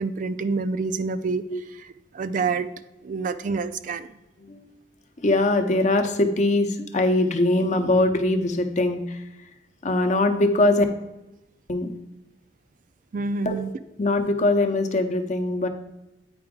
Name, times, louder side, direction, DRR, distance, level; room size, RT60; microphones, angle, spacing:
voice 1, 0.0-1.4 1.8-2.7 3.0-4.1 13.1-13.7, right 4 dB, 50° right, 11 dB, 0.4 m, -27 dB
voice 2, 4.4-4.7 5.2-9.2 9.8-10.8 11.7-11.9 13.5-13.6 14.0-15.7, left 2 dB, 45° left, 6 dB, 0.7 m, -22 dB
8.8 x 4.8 x 3.7 m, 0.95 s
head